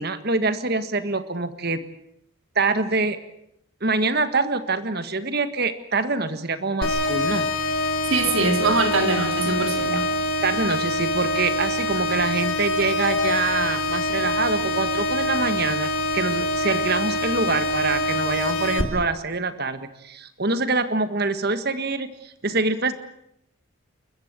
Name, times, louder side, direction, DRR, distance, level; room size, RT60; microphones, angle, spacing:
voice 1, 0.0-1.8 2.5-3.2 3.8-7.5 9.9-10.0 10.4-23.0, right 3 dB, 45° right, 11 dB, 1.7 m, -25 dB
sound 1, 6.8-18.8, left 1 dB, 70° left, 3.4 m, -25 dB
voice 2, 8.1-10.1, right 3 dB, 65° right, 6 dB, 3.3 m, -22 dB
30.0 x 14.5 x 8.9 m, 0.76 s
head